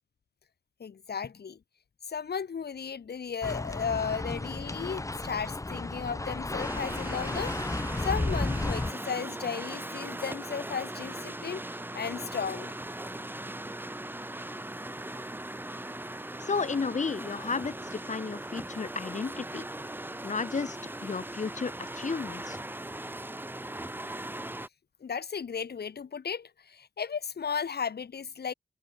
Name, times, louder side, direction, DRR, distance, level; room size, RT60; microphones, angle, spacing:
voice 1, 0.8-1.6 2.0-7.6 8.0-12.8 25.0-28.5, left 6 dB, 80° left, 2.6 m, -35 dB
sound 1, 3.4-8.9, left 2 dB, 20° left, 2.2 m, -33 dB
sound 2, 6.6-24.7, right 1 dB, 10° right, 5.6 m, -39 dB
voice 2, 16.4-19.6 20.2-22.6, left 5 dB, 45° left, 2.8 m, -33 dB
wide cardioid pair, 150°, 17 cm